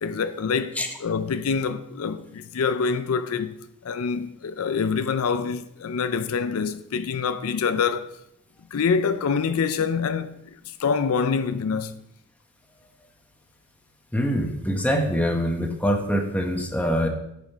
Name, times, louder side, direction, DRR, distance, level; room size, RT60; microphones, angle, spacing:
voice 1, 0.0-3.5 3.8-8.1 8.7-10.3 10.7-11.9, left 5 dB, 70° left, 0.4 m, -25 dB
voice 2, 14.1-17.1, equal, 5° left, 0.9 m, -24 dB
8.8 x 5.0 x 5.5 m
head